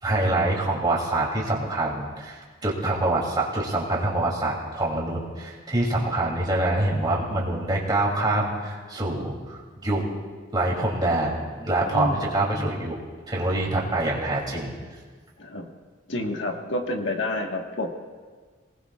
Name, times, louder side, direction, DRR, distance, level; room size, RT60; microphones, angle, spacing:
voice 1, 0.0-10.1 10.5-13.0 13.3-14.7, right 2 dB, 20° right, -3 dB, 2.9 m, -25 dB
voice 2, 15.4-15.7 16.1-17.9, left 1 dB, 70° left, 2 dB, 1.5 m, -29 dB
28.0 x 19.5 x 2.4 m, 1.5 s
head